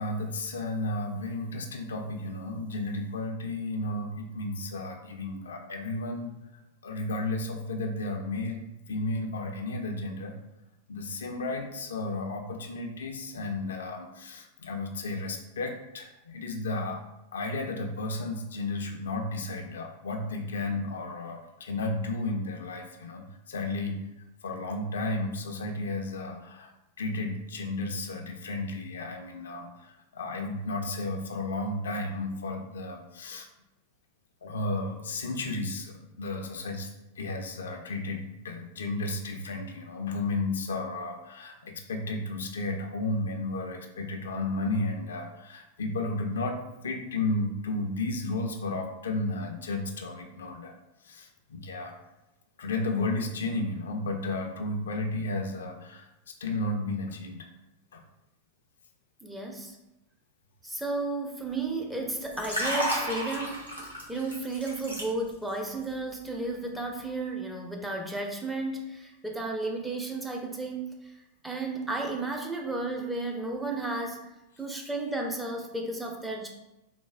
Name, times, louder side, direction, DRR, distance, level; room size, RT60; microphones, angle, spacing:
voice 1, 0.0-6.3 6.8-8.6 8.9-10.4 10.9-17.0 17.3-24.0 24.4-26.7 27.0-33.5 34.4-36.9 37.2-50.7 51.0-52.0 52.6-57.5 57.9-58.0, left 2 dB, 65° left, 3 dB, 0.3 m, -33 dB
voice 2, 59.2-59.8 60.6-63.7 64.1-71.1 71.4-74.2 74.6-76.5, right 2 dB, 5° right, 1 dB, 0.4 m, -33 dB
Liquid, 62.2-65.5 65.8-66.1, equal, 85° right, 0.7 m, -32 dB
3.1 x 2.0 x 2.4 m, 0.93 s
figure-of-eight pair, 90°, 0 cm